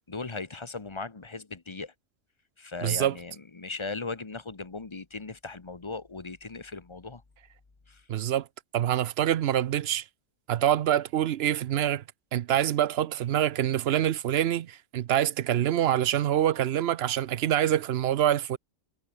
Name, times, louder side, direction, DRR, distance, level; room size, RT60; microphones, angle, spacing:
voice 1, 0.0-1.9 2.6-7.2 7.9-8.0, left 3 dB, 25° left, 1.1 m, -38 dB
voice 2, 2.8-3.1 8.1-8.5 8.7-10.0 10.5-12.0 12.3-18.6, right 11 dB, 60° right, 0.8 m, -25 dB
omnidirectional pair, 1.3 m